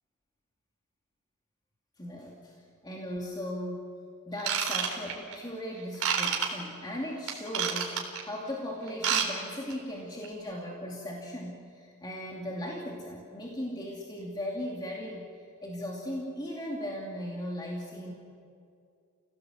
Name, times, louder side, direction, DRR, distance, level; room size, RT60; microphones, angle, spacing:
voice 1, 2.0-2.6 2.8-3.9 4.3-15.3 15.6-18.1, equal, 20° left, -2 dB, 2.6 m, -37 dB
Ratchet pawl / Tools, 4.4-5.3 6.0-6.5 7.3-8.2 8.9-9.3 9.5-9.7 10.2-10.3, right 7 dB, 85° right, 3.9 m, -28 dB
30.0 x 18.0 x 7.9 m, 2.4 s
head